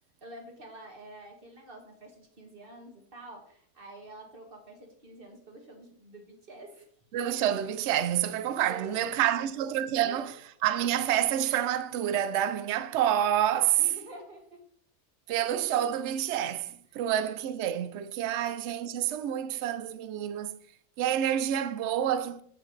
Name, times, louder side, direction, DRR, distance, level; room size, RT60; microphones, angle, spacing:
voice 1, 0.2-6.9 8.7-9.5 10.0-10.2 13.8-14.6 16.9-17.0 18.3-18.6, right 1 dB, 40° right, 1.8 m, -47 dB
voice 2, 7.1-10.4 10.6-13.8 15.3-20.6 21.0-22.4, right 11 dB, 60° right, 0.8 m, -28 dB
7.8 x 7.8 x 3.2 m
omnidirectional pair, 1.5 m